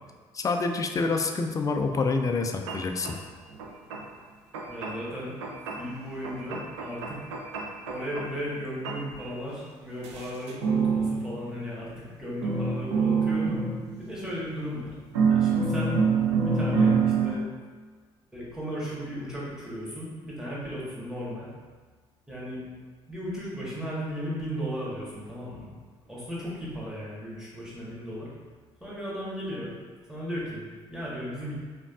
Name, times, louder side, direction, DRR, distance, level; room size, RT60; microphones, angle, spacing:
voice 1, 0.3-3.2, left 4 dB, 25° left, 5 dB, 0.4 m, -27 dB
sound 1, 2.2-2.3 2.7-3.1 3.5-4.1 4.5-5.1 5.4-5.9 6.2-8.6 8.8-9.2 10.0-12.2 12.4-14.6 15.1-17.4, right 5 dB, 70° right, 0.4 m, -27 dB
voice 2, 4.7-5.4 5.8-7.2 7.9-13.6 14.0-14.9 15.2-15.9 16.4-17.4 18.3-21.5 22.3-22.6 23.1-25.7 26.0-28.3 28.8-29.7 30.1-31.6, equal, 5° right, -7 dB, 1.4 m, -36 dB
5.0 x 2.5 x 2.4 m, 1.5 s
figure-of-eight pair, 50°, 15 cm